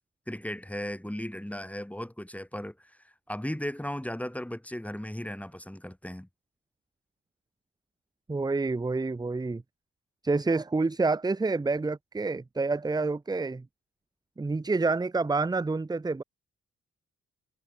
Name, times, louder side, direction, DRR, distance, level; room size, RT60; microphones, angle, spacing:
voice 1, 0.3-6.3, equal, 5° left, 7.7 m, -36 dB
voice 2, 8.3-9.6 10.2-13.6 14.4-16.2, right 3 dB, 15° right, 0.6 m, -28 dB
cardioid pair, 65°, 29 cm